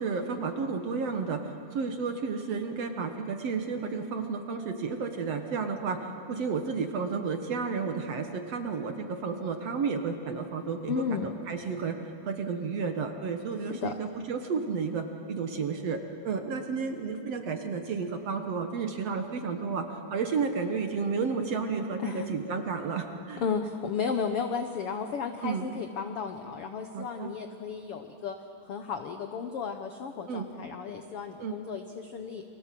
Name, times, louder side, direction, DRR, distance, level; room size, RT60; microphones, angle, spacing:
voice 1, 0.0-6.0 6.3-12.0 12.2-23.4 25.4-25.7 26.9-27.3 30.3-30.5 31.4-31.6, right 5 dB, 55° right, 6 dB, 2.0 m, -32 dB
voice 2, 10.9-11.3 13.8-13.9 22.0-22.3 23.4-28.3 28.7-32.4, left 6 dB, 75° left, 6 dB, 1.3 m, -34 dB
30.0 x 24.0 x 7.6 m, 2.9 s
omnidirectional pair, 4.1 m